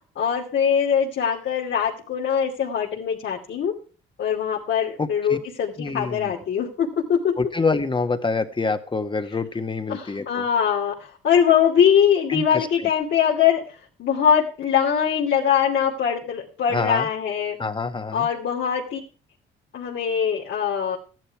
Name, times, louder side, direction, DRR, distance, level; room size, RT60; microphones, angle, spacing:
voice 1, 0.2-3.7 4.2-7.3 9.9-13.6 14.0-17.6 18.1-19.0 19.7-21.0, left 8 dB, 65° left, -1 dB, 2.7 m, -22 dB
voice 2, 5.0-5.4 5.8-6.3 7.4-10.4 12.3-12.9 16.7-17.1 17.6-18.3, left 4 dB, 25° left, 8 dB, 1.5 m, -26 dB
14.0 x 11.0 x 4.7 m, 0.38 s
cardioid pair, 90°, 20 cm